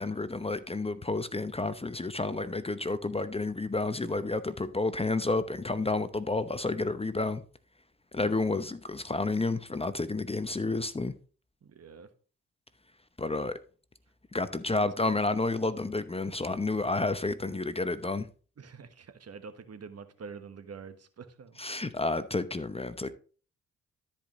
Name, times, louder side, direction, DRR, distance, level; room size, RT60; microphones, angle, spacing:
voice 1, 0.0-7.4 8.1-11.1 13.2-13.6 14.3-18.3 21.6-23.1, left 3 dB, 20° left, 0.8 m, -30 dB
voice 2, 11.6-12.1 14.7-15.1 16.9-17.4 18.6-21.8, right 5 dB, 50° right, 1.3 m, -47 dB
13.0 x 5.1 x 3.1 m
supercardioid pair, 55°, 32 cm